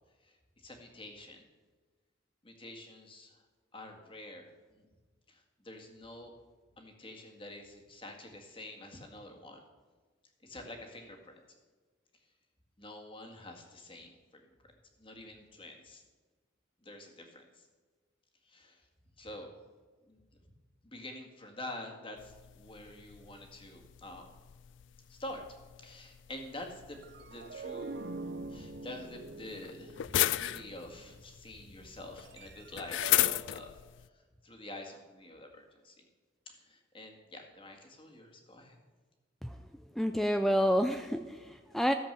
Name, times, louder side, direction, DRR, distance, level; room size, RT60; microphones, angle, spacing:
voice 1, 0.2-1.5 2.4-3.4 3.7-4.9 5.3-6.3 6.8-9.6 10.4-11.4 12.8-14.5 15.0-16.0 16.8-17.6 18.5-18.8 19.2-19.5 20.0-20.2 20.8-24.3 25.1-25.5 25.8-27.0 27.3-28.1 28.5-33.7 34.4-36.1 36.5-38.8, left 1 dB, 30° left, 2 dB, 1.8 m, -47 dB
sound 1, 22.2-34.1, left 14 dB, 75° left, 0.3 m, -36 dB
sound 2, 26.9-31.2 32.2-33.3, right 3 dB, 60° right, 0.6 m, -45 dB
voice 2, 40.0-41.9, equal, ahead, 7 dB, 0.4 m, -29 dB
14.0 x 7.7 x 6.7 m, 1.4 s
head